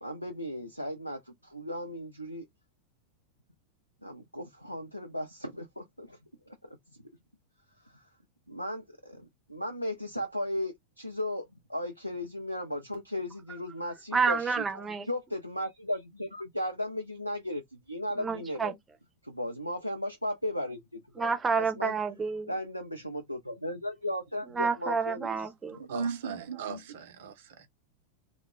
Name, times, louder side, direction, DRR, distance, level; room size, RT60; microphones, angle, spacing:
voice 1, 0.0-2.4 4.0-6.2 6.5-6.8 7.8-8.0 8.5-14.6 15.1-17.6 17.9-18.7 19.2-22.0 22.5-25.4 25.7-26.0, left 1 dB, 90° left, 0.5 m, -36 dB
voice 2, 14.1-15.1 18.2-18.7 21.2-22.5 24.5-25.8, right 5 dB, 15° right, 0.8 m, -29 dB
voice 3, 25.8-27.7, right 5 dB, 55° right, 0.7 m, -36 dB
2.2 x 2.0 x 3.3 m
figure-of-eight pair, 90°, 0 cm